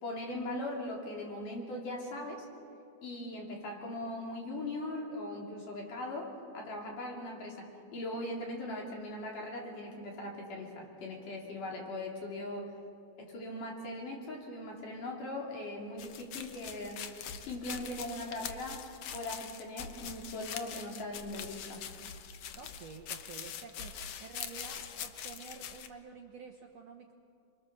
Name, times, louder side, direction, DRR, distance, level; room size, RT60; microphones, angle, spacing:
voice 1, 0.0-2.5 3.0-12.7 13.2-17.0 17.4-18.8 19.1-21.8, left 1 dB, 60° left, -1 dB, 5.0 m, -40 dB
sound 1, 16.0-25.9, left 8 dB, 80° left, 1.3 m, -43 dB
voice 2, 22.5-27.1, right 5 dB, 60° right, 2 dB, 1.9 m, -49 dB
28.5 x 23.5 x 7.0 m, 2.5 s
omnidirectional pair, 4.3 m